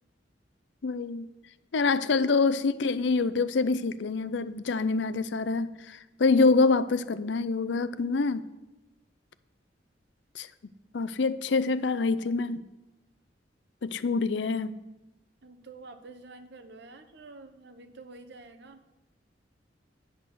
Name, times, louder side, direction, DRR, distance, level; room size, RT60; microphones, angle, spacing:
voice 1, 0.8-1.3 1.7-8.5 10.4-10.5 10.9-12.6 13.8-14.8, left 4 dB, 70° left, 14 dB, 0.5 m, -26 dB
voice 2, 15.4-18.8, right 3 dB, 65° right, 8 dB, 1.0 m, -48 dB
9.4 x 8.2 x 6.1 m, 1.0 s
head